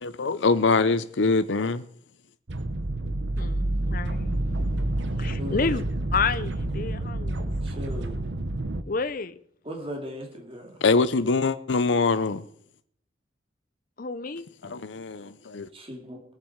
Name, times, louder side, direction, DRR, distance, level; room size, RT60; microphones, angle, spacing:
voice 1, 0.0-1.8 10.8-12.4 14.6-15.7, left 4 dB, 85° left, 0.7 m, -23 dB
sound 1, 2.5-8.8, right 1 dB, 85° right, 1.1 m, -28 dB
voice 2, 3.4-4.6 5.2-5.8 6.1-7.5 8.8-9.4 14.0-14.5, left 4 dB, 50° left, 0.7 m, -30 dB
voice 3, 5.4-5.8 7.6-8.1 9.6-10.8 15.7-16.2, equal, 30° right, 2.3 m, -37 dB
21.0 x 7.5 x 4.7 m
head